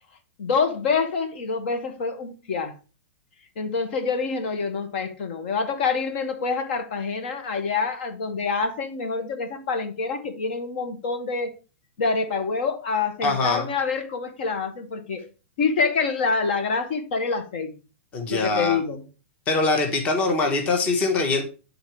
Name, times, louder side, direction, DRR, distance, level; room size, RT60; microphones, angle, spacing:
voice 1, 0.4-2.7 3.6-11.5 12.0-15.2 15.6-17.7 18.3-19.0, left 4 dB, 55° left, 1.1 m, -26 dB
voice 2, 13.2-13.7 18.1-18.8 19.5-21.4, left 3 dB, 20° left, 1.1 m, -23 dB
8.7 x 4.0 x 4.5 m
supercardioid pair, 165°, 7 cm